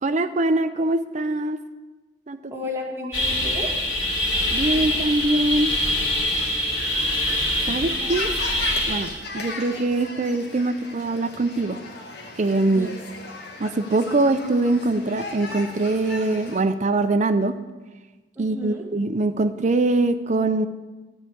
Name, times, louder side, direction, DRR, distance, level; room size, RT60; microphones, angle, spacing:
voice 1, 0.0-1.6 2.3-2.5 4.5-5.7 7.7-8.3 8.9-11.8 12.4-12.9 13.6-17.6 18.4-20.7, right 2 dB, 40° right, 11 dB, 0.5 m, -23 dB
voice 2, 2.5-3.8 8.0-8.1 12.7-12.9 18.3-18.9, left 2 dB, 15° right, -3 dB, 1.7 m, -33 dB
sound 1, 3.1-9.1, left 1 dB, 85° left, 3.4 m, -24 dB
sound 2, 4.3-16.6, left 2 dB, 60° left, 1.7 m, -38 dB
12.5 x 4.7 x 8.5 m, 1.2 s
head